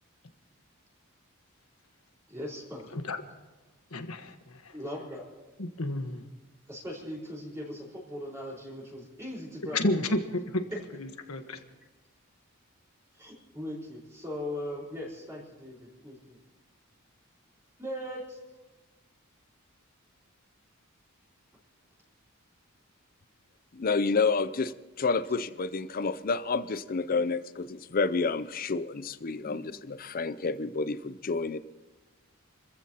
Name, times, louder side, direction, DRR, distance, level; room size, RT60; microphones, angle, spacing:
voice 1, 2.3-2.9 4.7-5.2 6.7-10.2 10.7-10.8 13.2-16.4 17.8-18.4 29.4-29.6, left 1 dB, 15° right, -4 dB, 4.8 m, -39 dB
voice 2, 3.9-4.3 5.6-6.2 9.7-10.2 10.5-10.6 11.0-11.6, left 2 dB, 90° left, 7 dB, 1.4 m, -30 dB
voice 3, 23.7-24.7 25.0-31.6, left 4 dB, 45° left, 13 dB, 0.6 m, -29 dB
30.0 x 14.5 x 3.0 m, 1.2 s
head